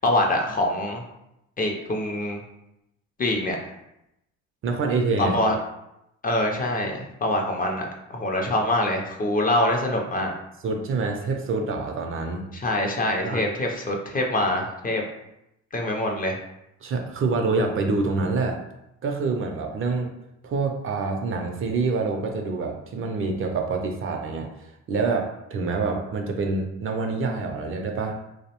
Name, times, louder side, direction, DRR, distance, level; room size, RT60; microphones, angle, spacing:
voice 1, 0.0-1.0 1.6-2.4 3.2-3.6 5.2-5.6 6.2-10.3 12.5-15.0 15.7-16.4, left 1 dB, 30° left, 1 dB, 0.4 m, -24 dB
voice 2, 4.6-5.4 10.6-12.5 13.2-13.5 16.8-18.6 19.0-20.1 20.4-24.5 24.9-28.2, right 3 dB, 45° right, 3 dB, 0.4 m, -26 dB
2.6 x 2.0 x 2.8 m, 0.85 s
cardioid pair, 90°, 30 cm